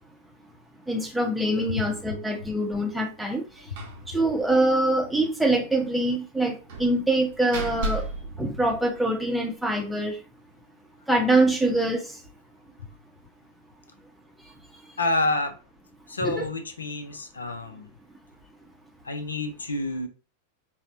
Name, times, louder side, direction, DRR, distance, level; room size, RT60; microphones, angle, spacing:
voice 1, 0.9-3.4 4.1-8.0 8.4-10.2 11.1-12.1 16.2-16.5, right 1 dB, 5° right, 0.6 m, -24 dB
Slam, 3.8-4.1 4.4-4.5 4.8-4.9 6.7-9.3, right 2 dB, 55° right, 0.7 m, -34 dB
voice 2, 15.0-15.6 16.1-17.9 19.0-20.1, left 2 dB, 75° left, 0.4 m, -28 dB
4.1 x 2.0 x 2.5 m
figure-of-eight pair, 90°, 0 cm